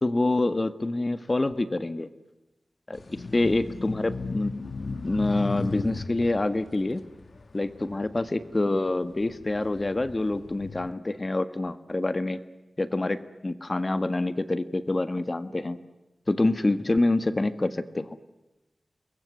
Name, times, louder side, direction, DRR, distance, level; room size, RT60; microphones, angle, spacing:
voice 1, 0.0-2.1 2.9-4.5 5.0-7.0 7.5-12.4 12.8-15.8 16.3-18.2, left 2 dB, 35° left, 12 dB, 1.6 m, -26 dB
sound 1, 2.9-8.5 9.0-10.9, left 4 dB, 65° left, 1.3 m, -36 dB
28.5 x 22.0 x 9.6 m, 1.0 s
wide cardioid pair, 65°, 0 cm